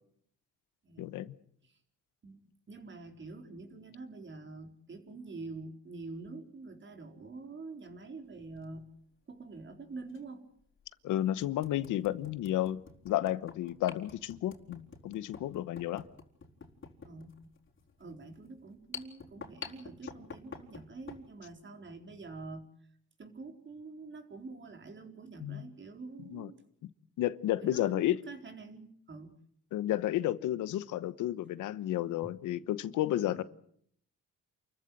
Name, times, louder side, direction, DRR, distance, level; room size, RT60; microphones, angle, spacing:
voice 1, 1.0-1.3 11.0-16.0 25.4-25.7 26.3-26.5 26.8-26.9 27.2-28.2 29.7-33.4, left 13 dB, 85° left, 1.1 m, -32 dB
voice 2, 2.2-8.9 9.3-10.5 17.0-17.3 18.0-22.7 23.2-26.6 27.6-29.4 32.2-32.3 33.3-33.4, right 3 dB, 40° right, 4.4 m, -46 dB
sound 1, 8.4-8.6 10.1-10.2 10.8-10.9 11.4-21.3, left 5 dB, 40° left, 4.2 m, -48 dB
28.5 x 14.5 x 9.4 m
cardioid pair, 90°, 30 cm